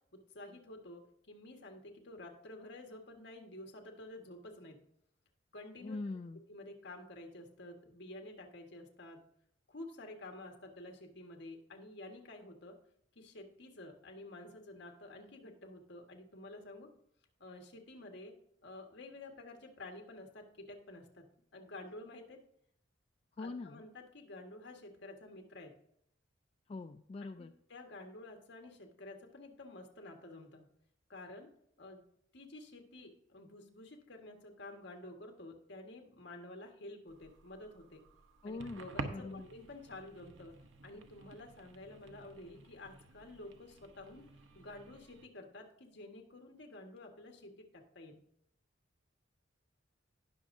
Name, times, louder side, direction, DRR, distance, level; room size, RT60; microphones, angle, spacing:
voice 1, 0.1-4.8 5.5-6.0 6.5-9.2 9.7-12.8 13.1-16.9 17.4-18.3 18.6-22.4 23.4-25.7 27.2-30.7 31.1-31.5 31.8-32.0 32.3-38.0 38.4-40.5 40.8-44.3 44.5-48.2, left 2 dB, 65° left, 2 dB, 1.6 m, -50 dB
voice 2, 5.8-6.4 23.4-23.8 26.7-27.5 38.4-39.5, left 3 dB, 30° left, 7 dB, 0.3 m, -43 dB
sound 1, 37.1-45.3, right 2 dB, 80° right, 0.9 m, -50 dB
18.5 x 6.2 x 2.7 m, 0.71 s
head